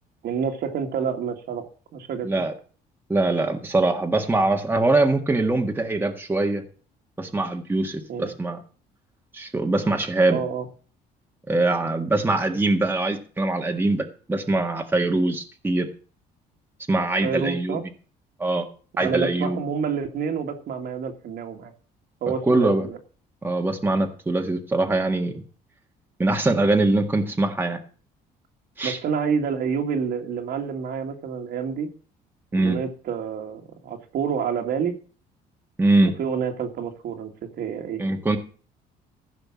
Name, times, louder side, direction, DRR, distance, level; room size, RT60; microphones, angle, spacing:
voice 1, 0.2-2.5 8.1-8.3 10.3-10.7 17.2-17.8 18.9-21.7 22.2-23.0 28.8-31.9 32.5-35.0 36.0-38.0, right 6 dB, 65° right, 3 dB, 2.2 m, -28 dB
voice 2, 2.2-2.5 3.1-6.6 7.2-8.6 9.3-10.4 11.5-15.9 16.9-17.8 18.4-18.6 19.0-19.6 22.5-22.9 23.4-25.4 26.2-27.8 28.8-29.0 32.5-32.8 35.8-36.1 38.0-38.4, right 2 dB, 10° right, 3 dB, 1.7 m, -22 dB
14.5 x 5.2 x 7.4 m, 0.40 s
cardioid pair, 110°, 17 cm